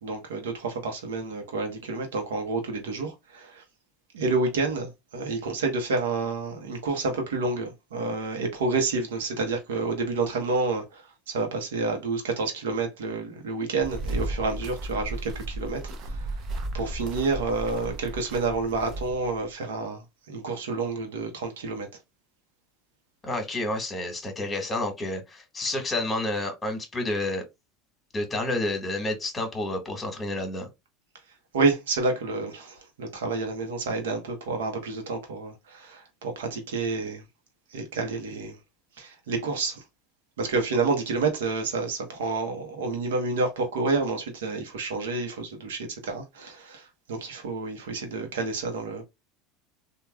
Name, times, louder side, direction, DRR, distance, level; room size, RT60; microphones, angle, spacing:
voice 1, 0.0-3.6 4.1-16.4 16.7-21.9 31.5-37.2 37.7-38.5 39.0-39.8 40.4-49.0, right 3 dB, 90° right, 0.9 m, -29 dB
sound 1, 13.8-19.4, right 1 dB, 50° right, 0.6 m, -34 dB
voice 2, 23.2-27.4 28.1-30.7, left 2 dB, 20° left, 1.3 m, -30 dB
3.3 x 2.3 x 2.2 m
supercardioid pair, 105°, 0 cm